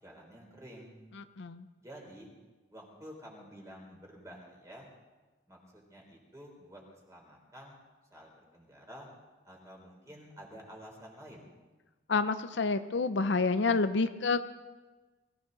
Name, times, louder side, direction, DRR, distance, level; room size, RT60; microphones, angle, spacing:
voice 1, 0.0-1.0 1.8-2.3 2.7-4.9 5.5-7.8 8.1-9.1 9.4-11.5, equal, 15° right, -1 dB, 3.6 m, -50 dB
voice 2, 1.2-1.7 12.1-14.4, left 4 dB, 70° left, 10 dB, 0.6 m, -28 dB
22.5 x 15.0 x 4.0 m, 1.2 s
head